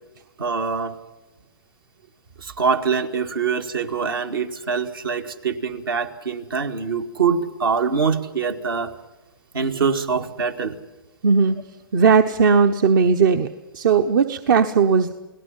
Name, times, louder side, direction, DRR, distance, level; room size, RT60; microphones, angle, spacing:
voice 1, 0.4-1.0 2.4-8.9 9.5-10.8, right 5 dB, 75° right, 5 dB, 2.1 m, -24 dB
voice 2, 11.2-11.6 11.9-13.5 13.7-15.1, right 5 dB, 60° right, 9 dB, 1.0 m, -17 dB
30.0 x 18.5 x 5.7 m, 1.1 s
hypercardioid pair, 120°, 12 cm